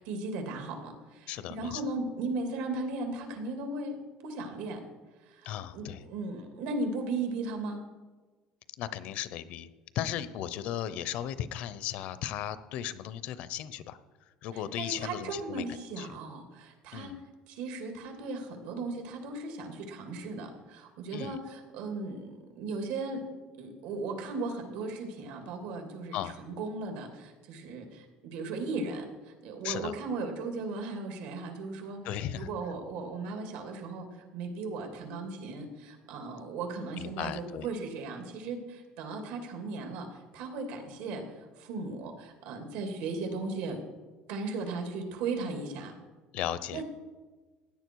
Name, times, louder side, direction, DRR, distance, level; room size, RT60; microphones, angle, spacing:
voice 1, 0.0-4.8 5.2-7.8 14.5-17.2 17.5-23.3 23.6-32.0 32.3-41.2 41.6-43.8 44.3-45.9 46.7-46.8, right 3 dB, 75° right, 4 dB, 2.7 m, -37 dB
voice 2, 1.3-1.8 5.4-6.0 8.8-9.7 9.9-14.0 14.4-15.6 16.0-16.1 16.9-17.2 21.1-21.4 26.1-26.4 29.6-29.9 32.0-32.5 37.0-37.7 46.3-46.8, left 11 dB, 55° left, 15 dB, 0.7 m, -36 dB
16.5 x 10.0 x 4.7 m, 1.3 s
cardioid pair, 175°, 3 cm